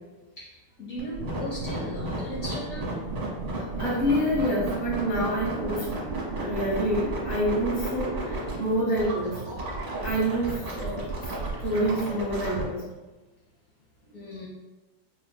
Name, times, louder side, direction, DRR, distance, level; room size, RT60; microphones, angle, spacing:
voice 1, 0.4-2.9 14.0-14.5, equal, 80° left, -6 dB, 0.7 m, -37 dB
sound 1, 1.0-12.6, right 2 dB, 35° right, 1.1 m, -32 dB
voice 2, 3.5-5.9 6.4-9.4 10.0-11.3 11.6-12.8, equal, 25° left, -7 dB, 1.0 m, -27 dB
4.8 x 3.2 x 2.2 m, 1.2 s
omnidirectional pair, 2.4 m